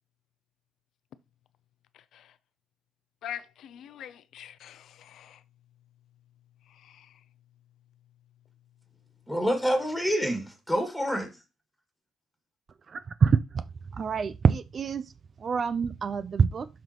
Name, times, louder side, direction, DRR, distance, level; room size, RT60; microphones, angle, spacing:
voice 1, 3.2-5.4, left 10 dB, 75° left, 0.5 m, -42 dB
voice 2, 9.3-11.3, equal, ahead, 2.0 m, -27 dB
voice 3, 12.9-13.6 14.0-15.0 15.4-16.7, right 6 dB, 45° right, 0.4 m, -25 dB
12.0 x 4.0 x 3.0 m
cardioid pair, 90°, 0 cm